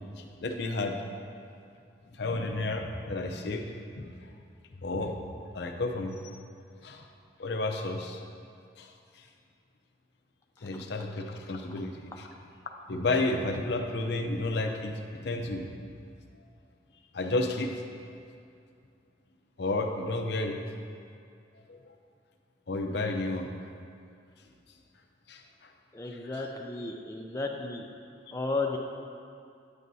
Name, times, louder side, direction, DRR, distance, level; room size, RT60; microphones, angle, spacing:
voice 1, 0.2-1.0 2.1-3.6 3.9-4.1 4.8-5.2 5.5-6.2 6.8-7.1 7.4-8.2 8.8-8.9 10.6-12.3 12.9-15.0 15.2-15.7 16.3-16.4 17.1-17.7 19.6-20.6 21.7-21.8 22.7-23.5 25.3-25.4 26.1-26.4, left 2 dB, 65° left, 3 dB, 0.6 m, -31 dB
voice 2, 25.9-27.9 28.3-28.8, left 3 dB, 15° left, 0 dB, 0.4 m, -33 dB
9.6 x 7.6 x 2.7 m, 2.4 s
head